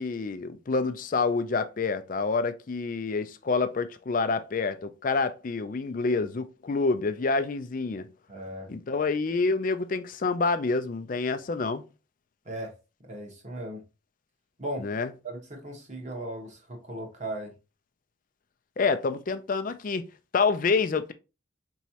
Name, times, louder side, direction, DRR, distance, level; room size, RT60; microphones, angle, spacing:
voice 1, 0.0-8.1 8.7-11.8 14.8-15.1 18.8-20.1 20.3-21.1, left 4 dB, 40° left, 0.4 m, -27 dB
voice 2, 8.3-8.7 12.4-12.7 13.1-13.8 14.6-14.9 15.2-17.5, right 1 dB, 35° right, 1.2 m, -37 dB
4.6 x 3.1 x 2.8 m
head